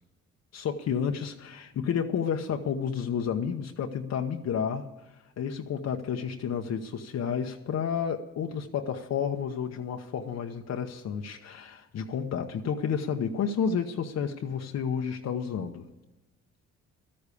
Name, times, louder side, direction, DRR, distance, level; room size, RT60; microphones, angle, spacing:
voice 1, 0.5-4.9 5.4-15.9, left 7 dB, 60° left, 4 dB, 0.9 m, -31 dB
13.0 x 8.6 x 8.4 m, 1.1 s
cardioid pair, 90°, 30 cm